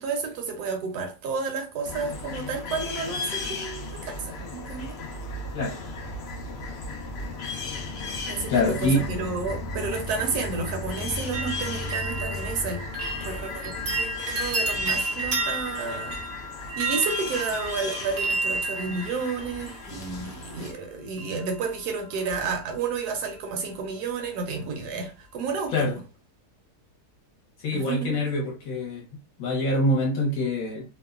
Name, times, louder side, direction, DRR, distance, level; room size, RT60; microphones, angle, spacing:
voice 1, 0.0-5.0 8.3-12.8 13.3-14.1 14.4-16.2 16.6-25.9 27.7-28.3, right 4 dB, 75° right, 1.1 m, -31 dB
sound 1, 1.8-20.7, left 3 dB, 90° left, 0.5 m, -35 dB
voice 2, 8.5-9.0 25.7-25.9 27.6-29.0 29.4-30.8, left 1 dB, 65° left, 1.0 m, -25 dB
sound 2, 11.3-20.3 21.2-21.7 22.0-22.5 22.8-22.9, right 2 dB, 55° right, 0.7 m, -31 dB
2.9 x 2.0 x 2.3 m
omnidirectional pair, 1.8 m